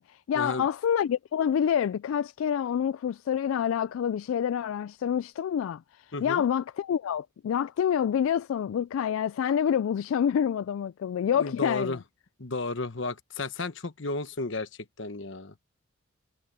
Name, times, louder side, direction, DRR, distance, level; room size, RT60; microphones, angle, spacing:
voice 1, 0.0-5.8 6.2-12.0, left 8 dB, 85° left, 0.3 m, -27 dB
voice 2, 6.1-6.4 11.4-12.0 12.4-14.7 15.0-15.5, left 3 dB, 65° left, 1.2 m, -33 dB
head